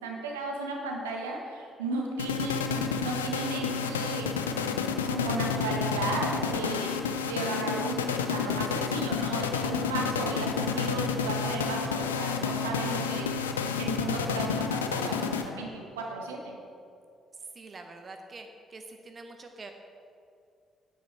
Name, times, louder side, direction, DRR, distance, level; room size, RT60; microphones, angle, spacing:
voice 1, 0.0-4.6 5.1-13.3 13.8-16.6, right 3 dB, 75° right, 0 dB, 1.1 m, -35 dB
sound 1, 2.2-15.8, left 6 dB, 80° left, 0.4 m, -30 dB
voice 2, 17.5-19.7, right 3 dB, 40° right, 5 dB, 0.8 m, -45 dB
9.1 x 8.8 x 4.6 m, 2.4 s
figure-of-eight pair, 40°, 0 cm